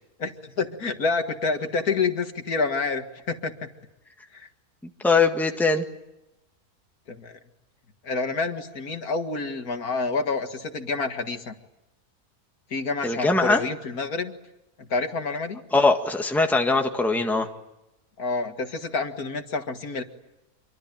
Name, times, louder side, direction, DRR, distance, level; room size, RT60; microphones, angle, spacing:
voice 1, 0.2-3.7 4.3-4.5 7.1-7.4 8.0-11.5 12.7-14.3 14.8-15.6 18.2-20.0, left 4 dB, 65° left, 6 dB, 2.3 m, -28 dB
voice 2, 5.0-5.8 13.0-13.6 15.7-17.5, left 3 dB, ahead, 4 dB, 1.7 m, -21 dB
26.5 x 24.0 x 9.1 m, 0.94 s
omnidirectional pair, 1.7 m